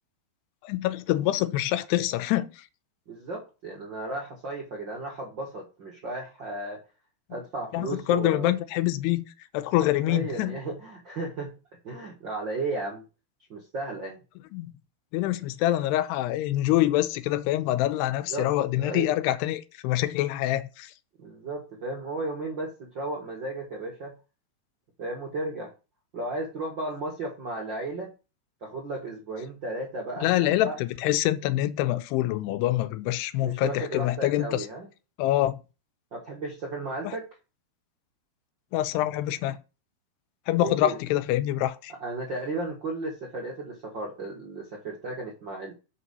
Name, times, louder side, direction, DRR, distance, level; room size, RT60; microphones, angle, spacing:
voice 1, 0.6-2.5 7.7-9.2 9.5-10.6 14.5-14.7 15.1-20.9 30.2-34.7 35.2-35.6 37.0-37.1 38.7-39.6 40.5-41.9, left 14 dB, 90° left, 2.7 m, -25 dB
voice 2, 3.1-6.8 7.3-8.5 10.1-11.5 11.8-13.0 13.5-14.2 18.3-19.1 21.2-24.1 25.0-25.7 26.1-28.1 28.6-30.8 33.4-34.9 36.1-37.3 40.6-41.0 42.0-45.7, right 2 dB, 65° right, 1.1 m, -34 dB
6.0 x 5.7 x 5.4 m
omnidirectional pair, 4.7 m